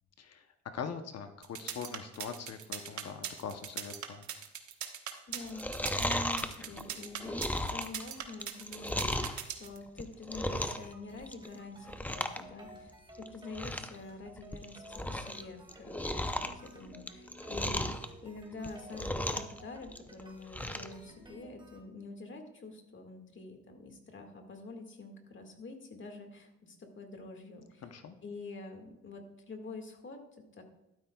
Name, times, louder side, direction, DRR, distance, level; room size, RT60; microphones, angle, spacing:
voice 1, 0.7-4.3 27.8-28.2, left 6 dB, 55° left, 7 dB, 0.9 m, -42 dB
sound 1, 1.4-9.8, right 9 dB, 70° right, 1.2 m, -40 dB
voice 2, 5.3-5.7 5.9-9.3 9.6-27.9 28.2-30.6, left 3 dB, 40° left, 4 dB, 1.9 m, -46 dB
Chewing mastication, 5.4-9.4 9.9-10.9 11.2-11.5 11.9-12.4 12.7-12.8 13.2-13.3 13.5-14.0 14.4-15.4 15.7-18.1 18.5-19.6 19.9-20.9 21.3-21.4, left 1 dB, 5° left, 0.6 m, -35 dB
sound 2, 10.4-21.8, right 1 dB, 15° right, 2.2 m, -54 dB
12.5 x 12.0 x 2.3 m, 0.88 s
cardioid pair, 90°, 30 cm